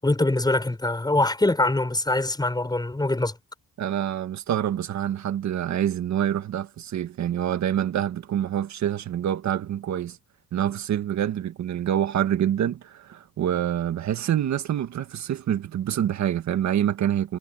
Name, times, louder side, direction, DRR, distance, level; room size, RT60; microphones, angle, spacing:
voice 1, 0.0-3.3, left 2 dB, 15° left, 6.6 m, -23 dB
voice 2, 3.8-10.2 10.5-17.4, right 10 dB, 65° right, 1.7 m, -26 dB
cardioid pair, 90°, 30 cm